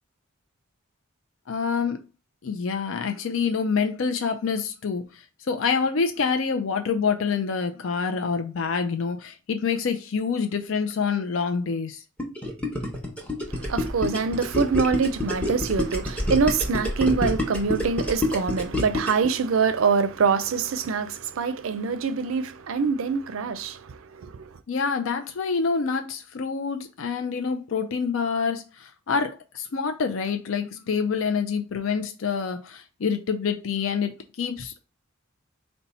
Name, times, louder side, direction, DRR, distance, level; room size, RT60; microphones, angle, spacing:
voice 1, 1.5-2.0 2.4-12.0 24.7-34.8, left 5 dB, 65° left, 0.5 m, -27 dB
Gurgling, 12.2-19.3, left 1 dB, 5° left, 0.8 m, -27 dB
voice 2, 13.5-24.5, right 5 dB, 70° right, 0.4 m, -25 dB
4.0 x 2.2 x 4.1 m
head